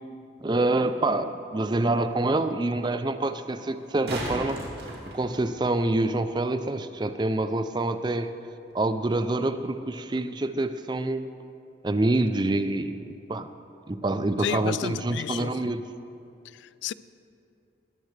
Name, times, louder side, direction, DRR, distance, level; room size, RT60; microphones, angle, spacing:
voice 1, 0.4-4.6 5.1-8.3 8.7-11.3 11.8-13.0 13.3-13.5 13.9-15.8, right 2 dB, 25° right, 0.4 m, -26 dB
sound 1, 0.8-0.9 3.7-5.8 8.7-8.8, right 1 dB, 60° right, 2.3 m, -35 dB
voice 2, 14.4-15.5 16.6-16.9, left 8 dB, 70° left, 0.3 m, -31 dB
20.5 x 13.0 x 3.3 m
head